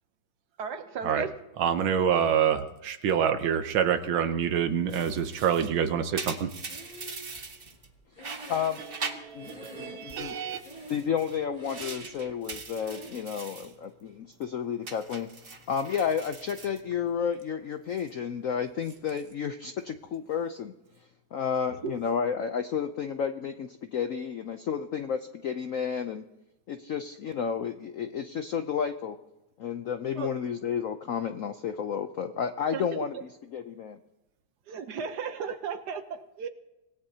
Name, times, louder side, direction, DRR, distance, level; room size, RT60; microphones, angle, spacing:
voice 1, 0.6-1.3 21.8-21.9 30.1-30.3 32.7-33.0 34.7-36.5, right 6 dB, 60° right, 9 dB, 1.3 m, -35 dB
voice 2, 1.6-6.5 9.2-10.6, right 8 dB, 85° right, 8 dB, 1.7 m, -26 dB
sound 1, 4.9-7.9 8.2-9.8 10.1-13.7 14.1-14.4 14.8-17.4 17.7-18.1 18.7-19.3, right 4 dB, 35° right, 1.2 m, -42 dB
Breathing, 5.4-6.1 6.7-9.1 9.4-10.2 10.6-11.2 11.5-12.1 12.7-13.2, equal, 25° left, 3.0 m, -47 dB
voice 3, 8.5-8.8 9.3-9.5 9.8-10.3 10.9-20.7 21.3-26.2 26.7-29.2 29.6-34.0, left 7 dB, 75° left, 8 dB, 0.7 m, -31 dB
25.5 x 17.5 x 2.8 m, 0.95 s
omnidirectional pair, 2.2 m